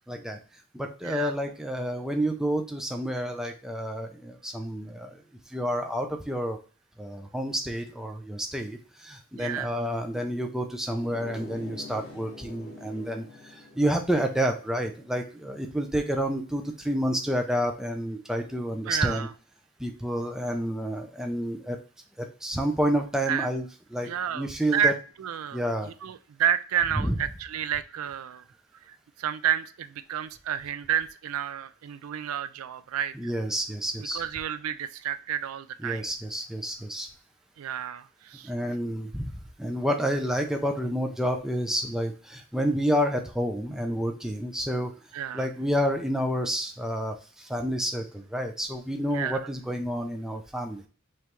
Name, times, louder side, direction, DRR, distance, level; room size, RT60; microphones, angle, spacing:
voice 1, 0.1-0.4 0.7-5.2 5.5-6.6 7.0-19.3 19.8-21.8 22.2-24.9 25.5-25.9 26.9-27.2 33.1-34.2 35.8-37.1 38.4-44.9 45.3-50.9, equal, ahead, 3 dB, 0.5 m, -29 dB
voice 2, 9.3-9.7 18.9-19.3 23.3-23.5 24.0-28.4 28.9-33.3 34.1-36.1 37.6-38.5 45.1-45.5 49.1-49.5, right 8 dB, 75° right, 13 dB, 0.4 m, -30 dB
sound 1, 11.0-16.3, left 2 dB, 45° left, 1.9 m, -46 dB
5.4 x 3.1 x 3.0 m, 0.37 s
head